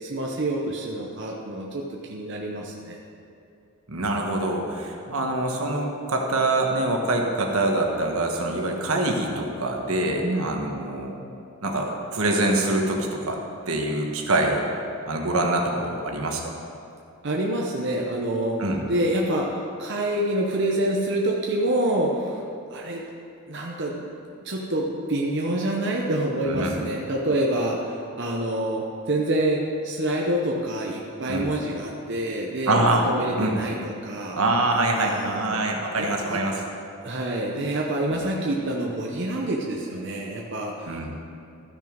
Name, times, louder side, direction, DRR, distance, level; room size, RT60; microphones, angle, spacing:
voice 1, 0.0-3.0 5.1-5.2 10.2-10.5 17.2-18.6 18.9-22.4 22.7-23.0 23.5-24.1 24.4-34.4 34.9-35.6 35.9-36.4 37.0-41.1, right 1 dB, 55° right, -2 dB, 0.8 m, -27 dB
voice 2, 3.9-11.1 11.6-13.4 13.7-14.7 15.1-16.4 18.6-18.8 26.4-26.7 31.3-31.5 32.7-33.0 33.4-33.5 34.3-36.6 38.1-38.2 40.8-41.1, right 2 dB, 80° right, 1 dB, 1.3 m, -25 dB
13.5 x 6.3 x 5.1 m, 2.5 s
head